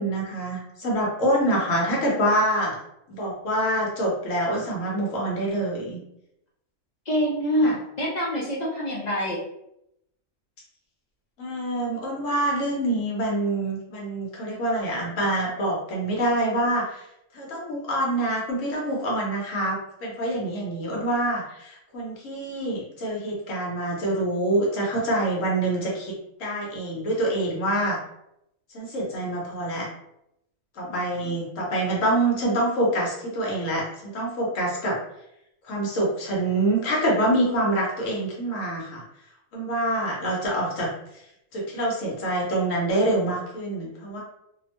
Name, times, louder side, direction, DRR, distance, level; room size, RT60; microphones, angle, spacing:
voice 1, 0.0-2.8 3.1-6.0 11.4-17.1 17.3-26.1 26.4-28.0 28.7-29.9 30.8-33.8 34.1-35.0 35.6-39.0 39.5-40.9 41.5-44.2, right 1 dB, 70° left, -3 dB, 1.3 m, -26 dB
voice 2, 7.1-9.4 30.9-31.4, equal, 50° left, -4 dB, 0.5 m, -26 dB
2.8 x 2.1 x 2.9 m, 0.81 s
omnidirectional pair, 1.4 m